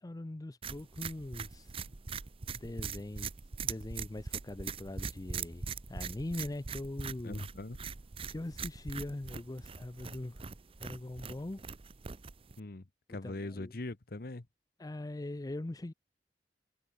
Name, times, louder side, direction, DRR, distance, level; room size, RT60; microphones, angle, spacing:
voice 1, 0.0-1.8 2.5-3.3 3.6-7.4 8.3-10.5 10.8-11.6 13.2-13.8 14.8-15.9, left 1 dB, 20° left, 0.5 m, -41 dB
sound 1, 0.6-12.6, right 5 dB, 30° right, 0.6 m, -42 dB
voice 2, 7.2-7.8 12.6-14.5, left 2 dB, 55° left, 1.0 m, -42 dB
head